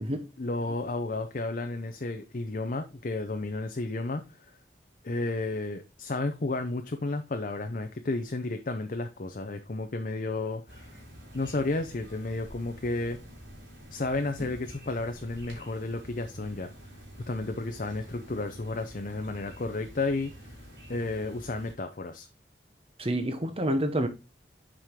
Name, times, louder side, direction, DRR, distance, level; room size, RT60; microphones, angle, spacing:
voice 1, 0.4-4.5 5.0-10.9 11.3-13.2 13.9-16.7 17.3-20.6 20.9-22.3, left 2 dB, 50° left, 0.6 m, -32 dB
sound 1, 10.7-21.7, equal, 85° right, 3.3 m, -48 dB
voice 2, 23.0-24.1, right 1 dB, 35° right, 1.1 m, -28 dB
7.5 x 5.0 x 3.7 m
head